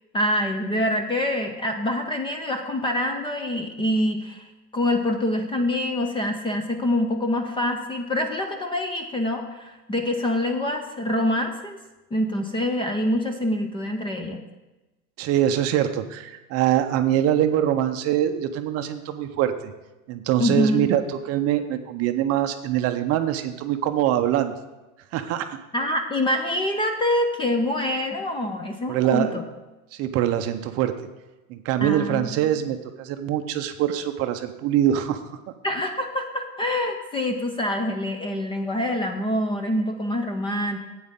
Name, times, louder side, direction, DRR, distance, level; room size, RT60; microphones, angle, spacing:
voice 1, 0.1-11.8 12.1-14.4 20.4-20.9 25.7-29.4 31.8-32.5 35.6-40.8, left 1 dB, 10° left, 5 dB, 0.5 m, -25 dB
voice 2, 15.2-19.7 20.1-24.5 25.1-25.6 28.9-29.4 29.9-30.9 31.5-35.3, right 11 dB, 35° right, 8 dB, 0.6 m, -23 dB
12.0 x 8.7 x 3.6 m, 1.1 s
hypercardioid pair, 125°, 45 cm